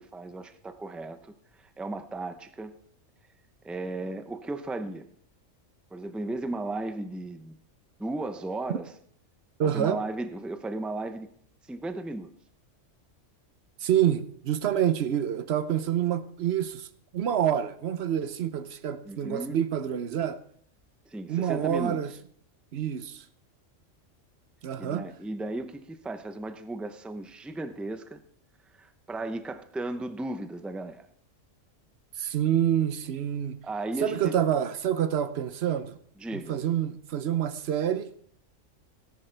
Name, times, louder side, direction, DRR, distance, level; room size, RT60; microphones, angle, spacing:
voice 1, 0.0-2.8 3.6-5.1 5.9-7.6 8.0-8.9 9.6-11.3 11.6-12.3 19.1-19.6 21.0-22.0 24.8-28.2 28.8-31.1 33.6-34.3 36.2-36.6, right 2 dB, ahead, 0.4 m, -35 dB
voice 2, 9.6-10.0 13.8-16.9 17.1-20.4 21.3-22.1 22.7-23.2 24.6-25.1 32.2-33.6 34.0-36.0 36.3-38.1, right 10 dB, 60° right, 0.9 m, -27 dB
17.5 x 10.5 x 3.4 m
omnidirectional pair, 1.3 m